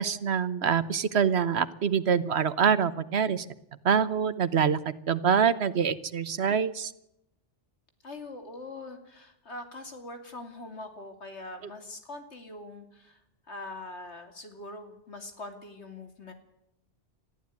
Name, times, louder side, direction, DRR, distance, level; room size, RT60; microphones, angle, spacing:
voice 1, 0.0-3.4 3.8-6.9, right 7 dB, 70° right, 15 dB, 1.2 m, -25 dB
voice 2, 8.0-13.2 13.5-16.3, left 2 dB, 75° left, 6 dB, 3.2 m, -43 dB
21.0 x 14.5 x 9.5 m, 0.83 s
omnidirectional pair, 1.2 m